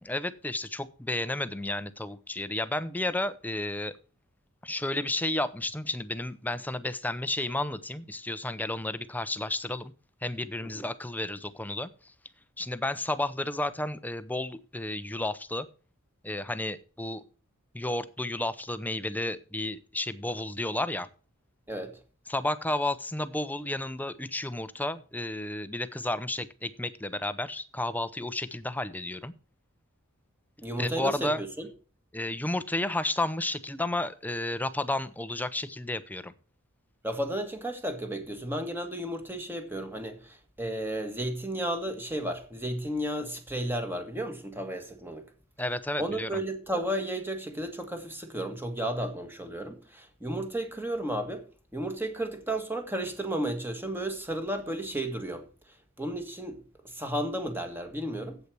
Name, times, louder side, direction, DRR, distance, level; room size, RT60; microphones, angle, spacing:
voice 1, 0.0-3.9 4.6-9.9 10.2-12.1 12.6-15.7 16.2-17.2 17.7-21.1 22.3-29.3 30.8-31.4 32.1-36.3 45.6-46.4, left 1 dB, 10° left, 0.6 m, -32 dB
voice 2, 30.6-31.7 37.0-45.2 46.0-51.4 51.7-55.5 56.0-58.4, right 1 dB, 10° right, 1.6 m, -33 dB
8.4 x 8.2 x 6.0 m
head